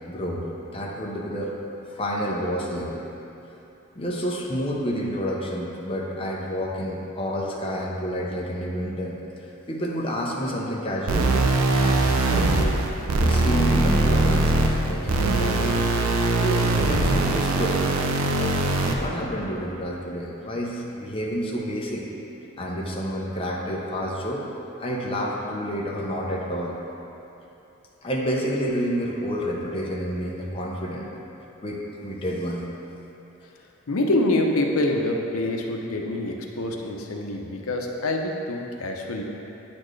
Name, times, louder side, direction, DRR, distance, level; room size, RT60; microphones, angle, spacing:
voice 1, 0.1-0.5 0.7-1.5 1.9-3.0 3.9-9.2 9.7-11.4 11.8-12.8 13.2-15.9 16.4-17.8 18.4-18.6 18.9-22.1 22.6-24.5 24.8-26.8 28.0-31.1 31.6-32.7, equal, 25° left, -3 dB, 0.7 m, -29 dB
sound 1, 11.1-19.1, right 2 dB, 85° right, 0.5 m, -21 dB
voice 2, 33.9-39.2, left 1 dB, 85° left, 1 dB, 0.7 m, -26 dB
8.9 x 4.3 x 3.2 m, 3.0 s
head